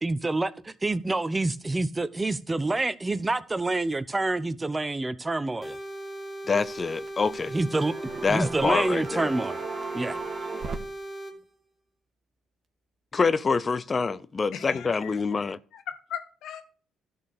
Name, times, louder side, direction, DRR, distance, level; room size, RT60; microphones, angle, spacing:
voice 1, 0.0-5.8 7.5-9.6 9.9-10.2, right 2 dB, 20° right, 0.8 m, -27 dB
sound 1, 5.6-11.3, right 1 dB, 5° left, 2.1 m, -38 dB
voice 2, 6.5-7.5 8.2-9.3 13.1-15.6, left 4 dB, 35° left, 0.5 m, -26 dB
sound 2, 6.6-7.4 7.7-10.8, right 4 dB, 45° right, 1.8 m, -36 dB
voice 3, 14.5-15.2 15.7-16.6, left 9 dB, 75° left, 1.5 m, -38 dB
12.0 x 4.5 x 6.6 m
supercardioid pair, 75°, 0 cm